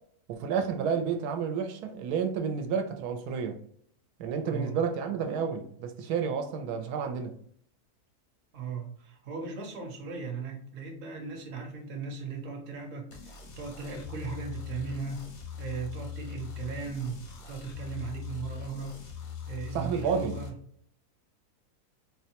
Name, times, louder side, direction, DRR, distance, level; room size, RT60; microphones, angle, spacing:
voice 1, 0.3-3.6 4.2-7.3 19.7-20.4, right 6 dB, 85° right, 1.1 m, -30 dB
voice 2, 4.4-4.8 8.5-15.3 15.6-17.2 17.5-19.0 19.5-20.5, right 5 dB, 60° right, 1.0 m, -37 dB
sound 1, 13.1-20.5, left 8 dB, 85° left, 1.3 m, -41 dB
4.1 x 2.1 x 2.8 m
omnidirectional pair, 1.6 m